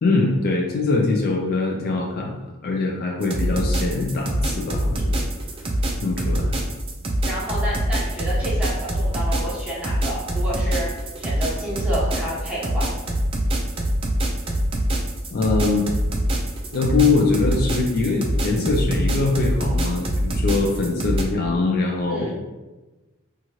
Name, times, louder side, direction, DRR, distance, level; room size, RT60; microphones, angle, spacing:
voice 1, 0.0-5.3 6.0-6.6 15.3-15.9 16.7-22.4, left 3 dB, 45° left, 0 dB, 0.4 m, -22 dB
sound 1, 3.2-21.2, right 1 dB, 25° right, 0.3 m, -24 dB
voice 2, 7.2-10.9 11.2-12.9 22.1-22.4, right 1 dB, 5° right, -8 dB, 0.9 m, -30 dB
2.8 x 2.4 x 2.9 m, 1.1 s
head